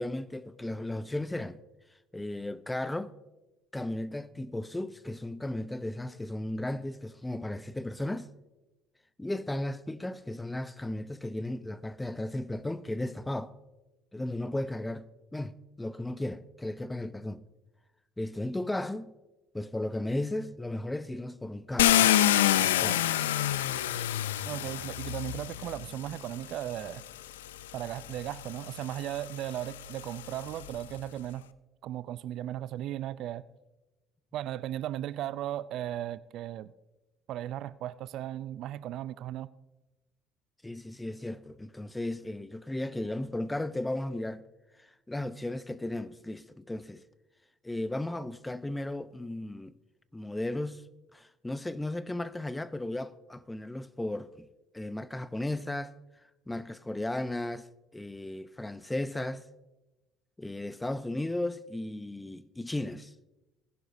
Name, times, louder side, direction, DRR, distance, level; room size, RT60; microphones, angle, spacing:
voice 1, 0.0-1.6 2.1-3.1 3.7-8.3 9.2-13.5 14.1-15.1 15.3-17.4 18.2-19.1 19.5-22.1 22.6-23.0 40.6-44.4 44.8-47.0 47.6-49.7 50.1-50.8 51.1-54.5 54.7-55.9 56.5-57.7 57.9-59.4 60.4-63.1, left 1 dB, 10° left, 0.7 m, -35 dB
Car, 21.8-25.9 26.9-27.0 27.5-30.8, left 12 dB, 90° left, 0.4 m, -27 dB
voice 2, 24.4-27.0 27.7-31.4 31.8-33.4 34.3-36.7 37.3-39.5, right 12 dB, 65° right, 0.4 m, -36 dB
19.5 x 11.0 x 2.7 m
hypercardioid pair, 70°, 0 cm